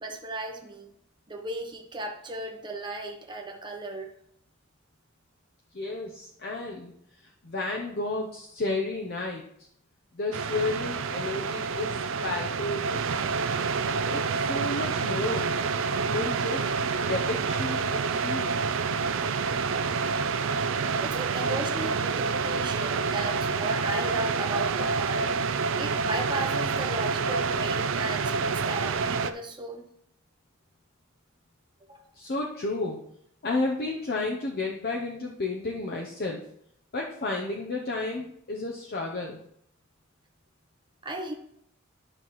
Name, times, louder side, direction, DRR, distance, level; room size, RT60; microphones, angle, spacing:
voice 1, 0.0-0.9 1.3-4.1 21.0-25.3 25.8-29.9 31.9-32.0 41.0-41.3, right 2 dB, 25° right, 1 dB, 0.8 m, -35 dB
voice 2, 5.7-6.9 7.4-9.4 10.1-13.0 14.1-16.7 17.1-18.6 32.2-33.0 33.4-36.4 36.9-39.4, left 2 dB, 50° left, 0 dB, 0.7 m, -32 dB
sound 1, 10.3-29.3, right 5 dB, 65° right, 0.4 m, -28 dB
12.0 x 5.7 x 3.1 m, 0.71 s
head